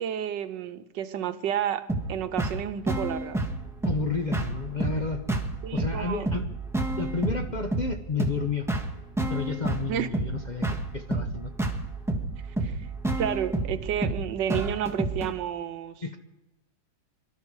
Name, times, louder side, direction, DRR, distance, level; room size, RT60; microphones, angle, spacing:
voice 1, 0.0-3.4 5.6-6.3 9.9-10.1 12.6-12.8 13.2-16.0, right 9 dB, 80° right, 1.5 m, -31 dB
sound 1, 1.9-15.3, right 2 dB, ahead, 1.4 m, -30 dB
voice 2, 3.8-5.2 5.7-6.5 7.0-8.7 9.3-11.5 16.0-16.2, left 4 dB, 35° left, 0.8 m, -31 dB
23.5 x 12.0 x 4.8 m
omnidirectional pair, 1.9 m